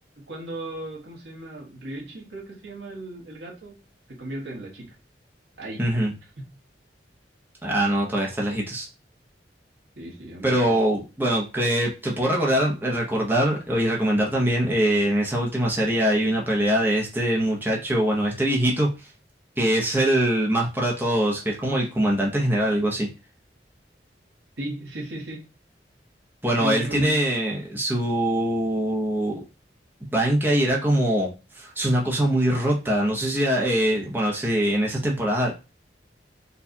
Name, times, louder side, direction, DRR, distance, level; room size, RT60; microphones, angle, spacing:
voice 1, 0.2-3.8 4.1-4.9 5.6-5.8 6.4-6.5 10.0-10.7 24.6-25.5 26.6-27.2, right 1 dB, 80° right, -2 dB, 1.3 m, -36 dB
voice 2, 5.8-6.1 7.6-8.9 10.4-18.9 19.6-23.1 26.4-29.4 30.1-31.3 31.6-35.5, right 1 dB, 10° right, -2 dB, 0.7 m, -23 dB
4.4 x 2.3 x 2.7 m, 0.30 s
head